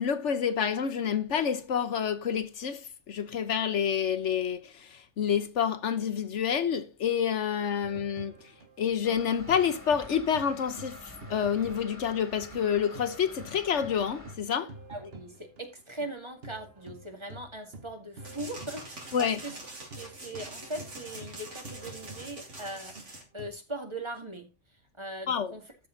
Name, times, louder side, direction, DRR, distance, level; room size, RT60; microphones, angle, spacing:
voice 1, 0.0-8.3 8.8-14.7 19.1-19.4 25.3-25.5, left 8 dB, 70° left, 1.2 m, -28 dB
sound 1, 7.8-12.7 12.9-23.5, right 2 dB, 55° right, 1.5 m, -48 dB
sound 2, 9.0-14.4, left 1 dB, 15° left, 2.5 m, -48 dB
voice 2, 14.9-19.6 20.0-24.5 25.0-25.6, right 1 dB, 25° right, 2.2 m, -40 dB
sound 3, 18.2-23.2, right 2 dB, 75° right, 2.8 m, -44 dB
13.5 x 6.2 x 3.9 m
omnidirectional pair, 1.3 m